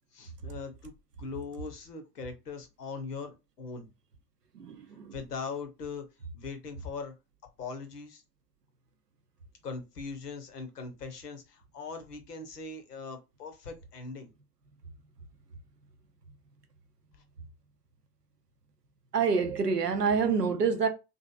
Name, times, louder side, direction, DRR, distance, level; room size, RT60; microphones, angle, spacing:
voice 1, 0.1-0.9 1.2-3.9 5.1-6.0 6.3-7.1 7.6-8.2 9.6-14.3, left 4 dB, 80° left, 0.8 m, -40 dB
voice 2, 4.5-5.1 19.1-20.9, right 5 dB, 90° right, 0.6 m, -27 dB
2.8 x 2.5 x 2.3 m
figure-of-eight pair, 65°, 46 cm